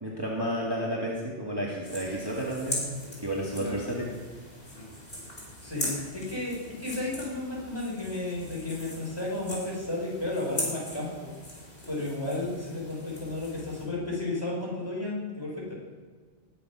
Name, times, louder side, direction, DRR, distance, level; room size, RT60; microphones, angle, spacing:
voice 1, 0.0-2.8 3.2-4.1, right 1 dB, 20° right, -4 dB, 2.0 m, -31 dB
sound 1, 1.8-13.9, left 1 dB, 50° left, 4.8 m, -40 dB
voice 2, 3.5-3.8 5.6-11.3 11.9-15.5, left 2 dB, 20° left, -4 dB, 4.6 m, -33 dB
19.5 x 7.0 x 5.9 m, 1.5 s
omnidirectional pair, 1.2 m